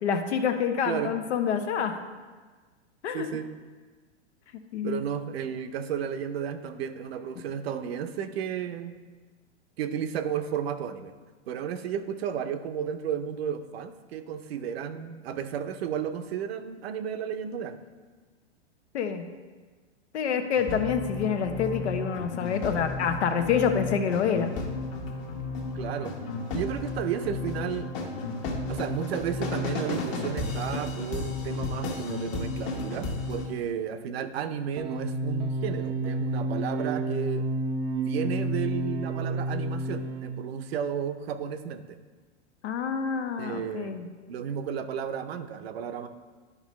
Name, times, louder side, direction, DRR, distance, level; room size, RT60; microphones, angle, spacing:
voice 1, 0.0-2.0 3.0-3.3 4.7-5.1 18.9-19.2 20.1-24.5 42.6-44.1, left 7 dB, 75° left, 7 dB, 0.9 m, -27 dB
voice 2, 0.8-1.2 3.1-3.5 4.8-9.0 9.8-11.1 11.5-17.8 25.7-26.1 26.5-27.9 28.7-37.4 38.0-42.0 43.4-44.0 44.3-46.1, right 8 dB, 60° right, 10 dB, 0.7 m, -33 dB
sound 1, 20.6-33.5, left 3 dB, 35° left, 1.2 m, -33 dB
sound 2, 34.8-40.4, right 2 dB, 20° right, 0.5 m, -30 dB
11.0 x 5.4 x 3.1 m, 1.4 s
hypercardioid pair, 135°, 34 cm